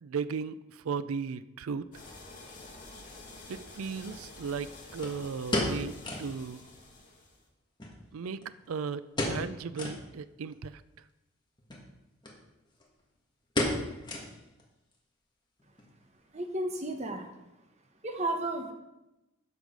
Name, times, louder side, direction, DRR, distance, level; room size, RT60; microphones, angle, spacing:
voice 1, 0.0-1.9 3.5-6.6 8.1-8.4 8.7-10.8, right 5 dB, 90° right, 14 dB, 0.4 m, -36 dB
sound 1, 1.9-7.4, left 2 dB, 40° left, 2.1 m, -49 dB
sound 2, 2.9-3.0 5.0-6.4 6.7-6.8 7.1-7.2 7.8-8.7 9.1-9.5 9.7-10.0 10.5-10.6 11.6-11.9 12.2-12.4 12.7-13.0 13.6-14.6 14.9-15.0 15.6-15.9 16.2-16.3, left 1 dB, 20° left, 1.6 m, -33 dB
voice 2, 16.3-17.3 18.0-18.7, right 1 dB, 30° right, 5 dB, 1.0 m, -33 dB
12.5 x 5.0 x 5.1 m, 0.96 s
head